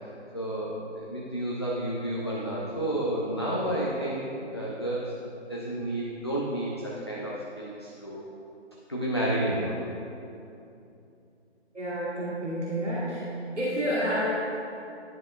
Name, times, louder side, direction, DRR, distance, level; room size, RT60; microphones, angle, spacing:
voice 1, 0.3-4.2 4.5-5.0 5.5-8.3 8.9-9.8, right 1 dB, 25° left, -6 dB, 0.4 m, -30 dB
voice 2, 11.7-13.3 13.5-14.2, equal, 80° right, -7 dB, 1.3 m, -29 dB
10.5 x 5.6 x 2.3 m, 2.7 s
figure-of-eight pair, 145°, 34 cm